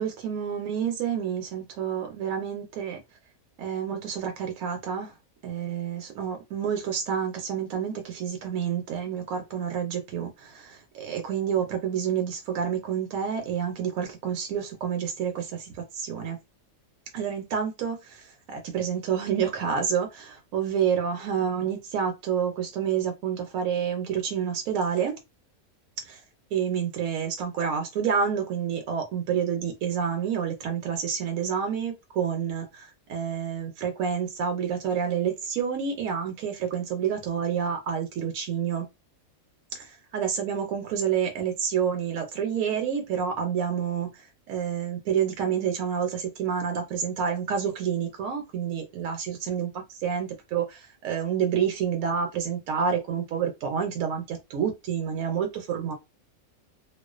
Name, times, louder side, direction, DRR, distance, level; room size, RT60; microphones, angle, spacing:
voice 1, 0.0-3.0 3.6-5.1 5.4-16.4 17.1-25.2 26.1-26.2 26.5-38.8 39.7-44.1 44.5-55.9, right 7 dB, 75° right, 1.0 m, -29 dB
2.3 x 2.2 x 2.4 m
omnidirectional pair, 1.5 m